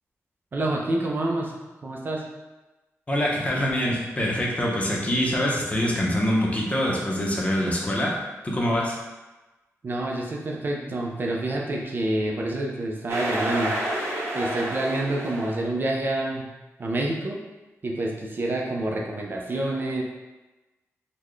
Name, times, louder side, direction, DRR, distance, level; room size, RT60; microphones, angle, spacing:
voice 1, 0.5-1.5 1.8-2.2 9.8-13.8 14.3-16.5 16.8-17.4 17.8-20.0, right 1 dB, 40° right, -1 dB, 0.4 m, -27 dB
voice 2, 3.1-9.0, equal, 25° left, -3 dB, 0.6 m, -25 dB
sound 1, 13.1-15.6, right 1 dB, 55° right, 0.8 m, -29 dB
3.9 x 2.1 x 3.1 m, 1.1 s
wide cardioid pair, 130°, 5 cm